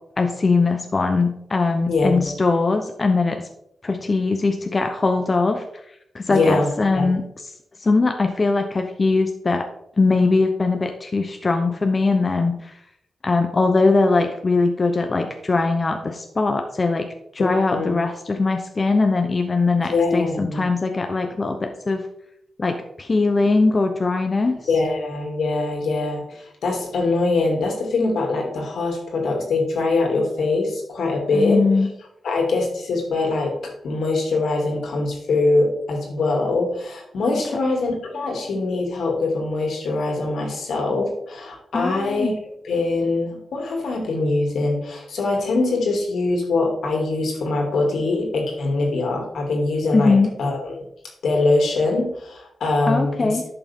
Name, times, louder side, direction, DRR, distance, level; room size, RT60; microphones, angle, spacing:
voice 1, 0.2-3.5 3.8-5.6 6.1-7.2 7.8-9.6 10.0-12.8 13.2-17.1 17.3-22.1 22.6-24.6 31.3-31.9 41.7-42.3 49.9-50.3 52.9-53.4, left 3 dB, 35° left, 5 dB, 0.8 m, -21 dB
voice 2, 1.9-2.3 6.3-7.1 17.4-17.9 19.8-20.7 24.7-31.6 32.2-42.3 42.6-50.8 51.2-53.4, left 3 dB, 80° left, 1 dB, 2.5 m, -23 dB
11.0 x 5.9 x 3.6 m, 0.75 s
cardioid pair, 95°, 0 cm